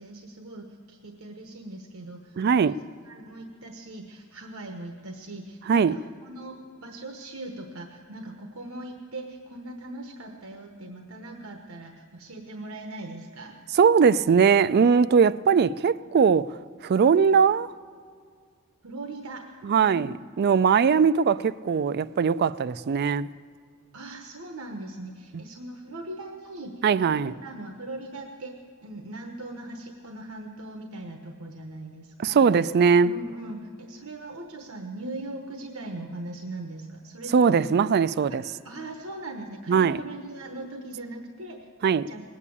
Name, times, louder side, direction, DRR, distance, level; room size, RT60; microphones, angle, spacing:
voice 1, 0.0-13.5 18.8-19.5 19.9-20.1 23.9-32.5 33.0-37.7 38.3-38.4 38.6-41.7 42.0-42.2, right 2 dB, 80° right, 1.1 m, -40 dB
voice 2, 2.4-2.7 5.7-5.9 13.7-16.5 16.8-17.7 19.6-23.3 26.8-27.3 32.2-33.2 37.3-38.4 39.7-40.0 41.8-42.1, right 6 dB, 50° right, 0.3 m, -20 dB
19.0 x 8.4 x 8.5 m
head